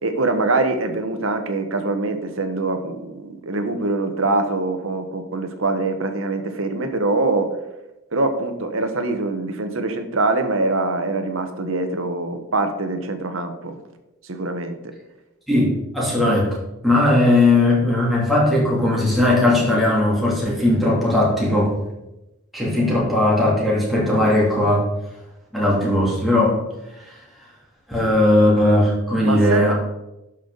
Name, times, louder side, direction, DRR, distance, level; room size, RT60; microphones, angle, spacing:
voice 1, 0.0-7.5 8.1-13.8 14.2-14.7 28.0-28.1 29.2-29.7, right 2 dB, 65° right, 7 dB, 1.1 m, -23 dB
voice 2, 15.5-16.6 16.8-21.8 22.5-24.8 25.5-26.6 26.9-27.1 27.9-29.7, left 1 dB, ahead, -6 dB, 2.8 m, -18 dB
12.0 x 5.7 x 4.0 m, 0.95 s
head